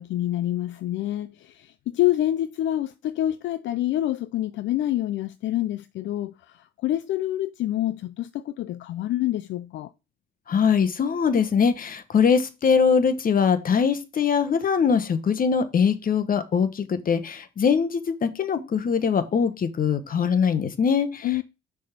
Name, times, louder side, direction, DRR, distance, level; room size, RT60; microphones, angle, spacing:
voice 1, 0.0-9.9 21.2-21.4, left 13 dB, 70° left, 0.4 m, -27 dB
voice 2, 10.5-21.3, left 6 dB, 45° left, 1.0 m, -22 dB
6.3 x 3.6 x 5.8 m
cardioid pair, 90°, 20 cm